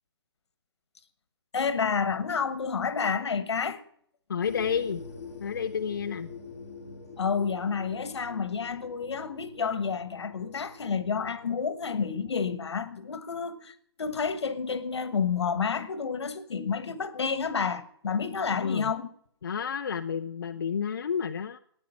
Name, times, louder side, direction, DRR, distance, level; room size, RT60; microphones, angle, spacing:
voice 1, 1.5-3.8 7.2-19.1, left 6 dB, 80° left, 1.4 m, -30 dB
voice 2, 4.3-5.0 5.4-6.3 18.5-18.9 19.4-21.6, left 7 dB, 50° left, 0.5 m, -30 dB
sound 1, 4.4-11.6, left 4 dB, 35° left, 2.3 m, -45 dB
12.5 x 9.8 x 5.7 m
hypercardioid pair, 180°, 14 cm